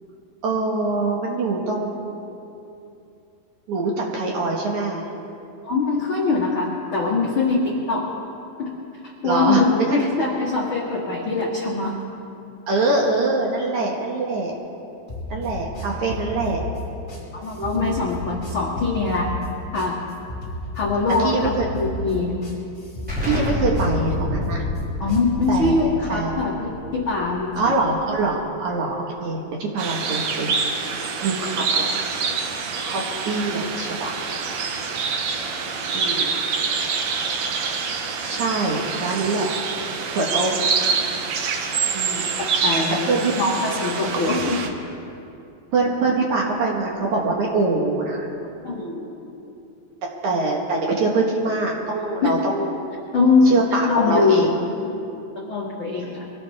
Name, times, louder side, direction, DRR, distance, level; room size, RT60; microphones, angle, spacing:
voice 1, 0.4-2.2 3.7-5.1 9.2-10.1 12.7-14.5 15.3-16.6 17.6-18.0 21.2-21.7 23.2-24.6 25.5-26.4 27.6-30.6 30.9-32.0 32.8-34.2 35.9-36.4 38.2-39.5 40.1-40.7 41.9-42.3 43.1-43.3 45.7-48.3 48.8-49.1 50.2-52.8 53.4-54.6, right 3 dB, 55° right, -2 dB, 2.3 m, -24 dB
voice 2, 5.6-8.0 8.6-8.7 9.2-11.9 17.3-19.3 19.7-20.0 20.7-22.4 25.0-27.7 42.4-43.0 43.4-44.6 48.6-48.9 52.2-52.3 53.1-53.5 53.9-54.5 54.9-55.0 55.3-56.3, left 3 dB, 80° left, -3 dB, 1.1 m, -22 dB
sound 1, 15.1-25.7, left 1 dB, 20° left, 3.8 m, -33 dB
Explosion, 23.1-28.5, left 2 dB, ahead, 4.5 m, -29 dB
sound 2, 29.8-44.7, right 5 dB, 85° right, 1.5 m, -26 dB
24.0 x 16.5 x 3.5 m, 2.7 s
omnidirectional pair, 4.8 m